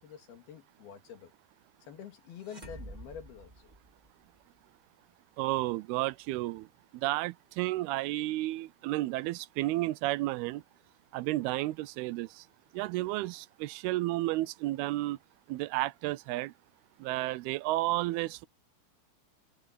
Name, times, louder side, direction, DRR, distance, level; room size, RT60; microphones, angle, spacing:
voice 1, 0.0-1.3 1.8-3.7, left 8 dB, 75° left, 4.3 m, -47 dB
sound 1, 2.4-4.4, right 1 dB, 30° right, 0.7 m, -48 dB
voice 2, 5.4-6.7 6.9-10.6 11.1-12.5 12.7-15.2 15.5-16.5 17.0-18.5, right 18 dB, 85° right, 2.5 m, -32 dB
omnidirectional pair, 4.5 m